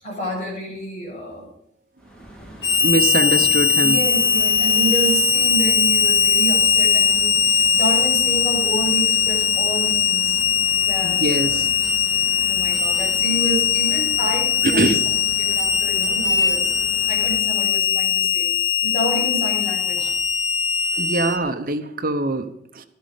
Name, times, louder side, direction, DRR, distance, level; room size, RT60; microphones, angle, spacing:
voice 1, 0.0-1.5 3.2-3.3 3.8-10.4 10.8-11.6 12.5-15.1 15.4-16.7 17.1-18.5 18.8-20.1, right 1 dB, 40° left, -3 dB, 7.8 m, -29 dB
sound 1, 2.0-17.4, right 1 dB, 5° left, 3.1 m, -40 dB
Harmonica, 2.6-21.4, left 7 dB, 70° left, 1.5 m, -20 dB
voice 2, 2.8-4.0 11.0-11.7 14.6-15.0 20.9-22.9, right 2 dB, 55° right, 8 dB, 1.0 m, -23 dB
15.0 x 13.0 x 5.2 m, 0.68 s
head